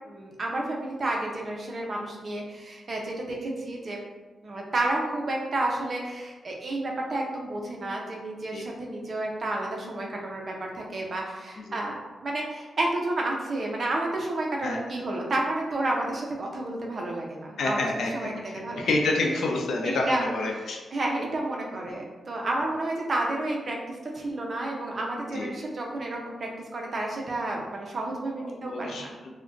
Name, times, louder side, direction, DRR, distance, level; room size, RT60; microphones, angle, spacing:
voice 1, 0.1-4.0 4.4-18.9 19.8-29.1, right 2 dB, 40° right, -1 dB, 0.5 m, -31 dB
voice 2, 17.6-20.8 25.3-25.5 28.5-29.4, left 2 dB, 80° left, 0 dB, 0.5 m, -29 dB
2.4 x 2.1 x 3.7 m, 1.2 s
wide cardioid pair, 155°, 0 cm